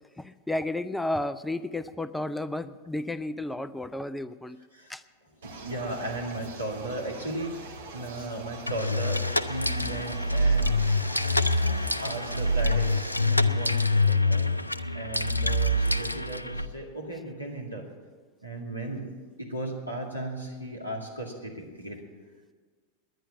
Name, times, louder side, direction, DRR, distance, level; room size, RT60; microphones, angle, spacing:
voice 1, 0.2-4.6 4.9-5.0 8.2-8.3, left 1 dB, 5° left, 13 dB, 0.4 m, -32 dB
sound 1, 5.4-13.2, right 4 dB, 60° right, 1.7 m, -43 dB
voice 2, 5.4-10.7 11.6-14.5 14.9-17.9 18.4-19.1 19.4-22.0, right 2 dB, 90° right, -2 dB, 2.3 m, -36 dB
sound 2, 8.7-16.7, left 1 dB, 85° left, 0.5 m, -25 dB
10.5 x 10.0 x 9.3 m, 1.5 s
figure-of-eight pair, 90°, 0 cm